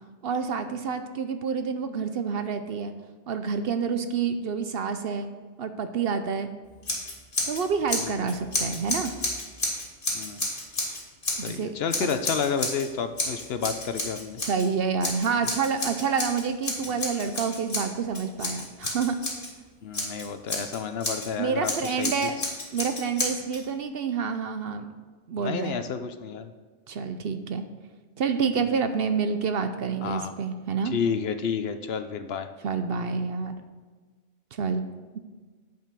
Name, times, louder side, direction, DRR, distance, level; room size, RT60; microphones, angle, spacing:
voice 1, 0.2-2.9 3.3-5.3 5.6-6.5 7.4-9.1 11.4-12.1 14.4-19.2 21.4-22.4 22.7-24.9 25.3-25.8 26.9-27.6 28.2-30.9 32.6-33.6 34.6-34.8, right 5 dB, 60° right, 9 dB, 0.8 m, -28 dB
Scissors, 6.8-7.6 7.9-11.5 11.9-12.9 13.2-14.7 15.0-19.5 19.9-21.3 21.6-23.6, left 2 dB, 45° left, 2.0 m, -31 dB
voice 2, 11.3-14.4 19.8-22.3 25.4-26.5 30.0-30.3 30.9-32.5, left 6 dB, 65° left, 9 dB, 0.8 m, -30 dB
9.0 x 5.3 x 6.7 m, 1.4 s
omnidirectional pair, 1.2 m